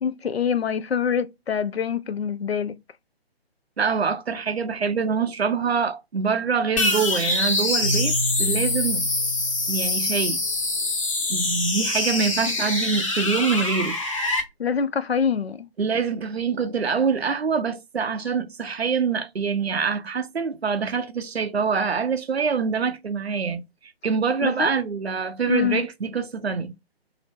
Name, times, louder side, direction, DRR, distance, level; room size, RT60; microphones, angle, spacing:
voice 1, 0.0-2.8 14.6-15.7 24.4-24.7 25.5-25.8, left 7 dB, 80° left, 0.5 m, -25 dB
voice 2, 3.8-9.1 9.7-10.5 11.3-14.0 15.8-23.6 24.0-26.8, right 5 dB, 85° right, 0.5 m, -25 dB
sound 1, 6.8-14.4, left 2 dB, 30° left, 0.6 m, -25 dB
Keyboard (musical), 7.8-10.7, equal, 25° right, 0.4 m, -31 dB
2.7 x 2.0 x 3.4 m
figure-of-eight pair, 140°, 31 cm